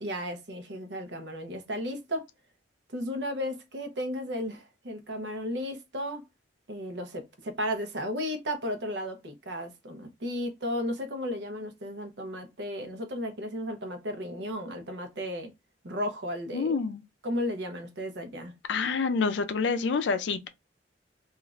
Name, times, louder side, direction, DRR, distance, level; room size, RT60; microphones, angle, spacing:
voice 1, 0.0-2.2 2.9-6.2 6.7-15.5 15.8-16.8 17.2-18.5, equal, 70° right, 0.7 m, -34 dB
voice 2, 16.5-17.0 18.7-20.5, left 4 dB, 75° left, 0.4 m, -27 dB
3.1 x 2.4 x 2.4 m
head